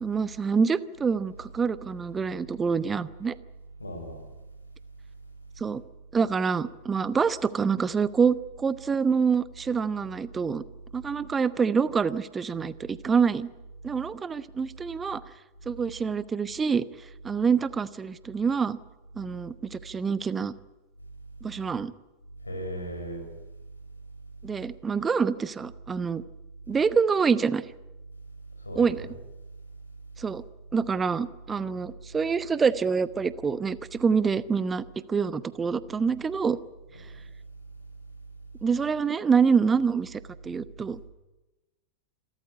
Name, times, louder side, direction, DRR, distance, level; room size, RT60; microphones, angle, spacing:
voice 1, 0.0-3.3 5.6-5.8 6.1-10.6 10.9-13.5 13.8-15.2 15.7-16.8 17.2-18.8 19.2-20.5 21.4-21.9 24.4-26.2 26.7-27.6 28.7-29.1 30.2-30.4 30.7-36.6 38.6-41.0, right 5 dB, 15° right, 16 dB, 1.0 m, -26 dB
voice 2, 3.8-4.3 22.4-23.2 28.6-29.2 36.9-37.0, equal, 80° left, 5 dB, 6.2 m, -37 dB
27.5 x 13.5 x 9.9 m, 1.1 s
figure-of-eight pair, 90°, 0 cm